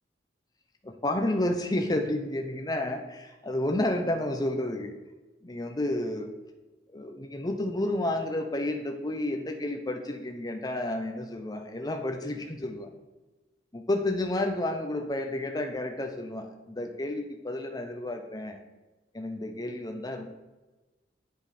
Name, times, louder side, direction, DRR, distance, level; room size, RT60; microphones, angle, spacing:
voice 1, 0.8-4.9 5.4-6.3 6.9-12.9 13.7-18.6 19.1-20.3, left 1 dB, 20° left, 4 dB, 0.6 m, -31 dB
8.3 x 5.2 x 4.1 m, 1.1 s
head